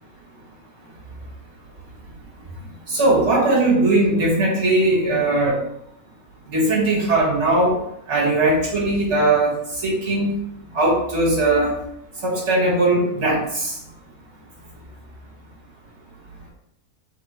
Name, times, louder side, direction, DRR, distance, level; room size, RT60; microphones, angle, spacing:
voice 1, 2.9-5.6 6.5-7.8 8.1-10.4 10.7-11.8 12.1-13.8, right 2 dB, 50° right, -4 dB, 1.4 m, -19 dB
3.5 x 2.0 x 4.0 m, 0.77 s
omnidirectional pair, 1.6 m